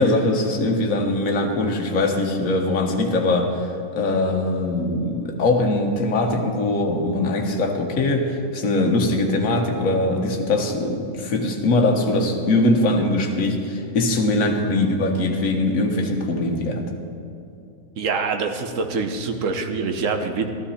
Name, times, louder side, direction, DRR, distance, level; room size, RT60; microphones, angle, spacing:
voice 1, 0.0-16.8, left 2 dB, 60° left, 3 dB, 1.5 m, -21 dB
voice 2, 18.0-20.5, right 4 dB, 60° right, 6 dB, 1.2 m, -25 dB
13.0 x 12.5 x 4.2 m, 2.7 s
omnidirectional pair, 1.6 m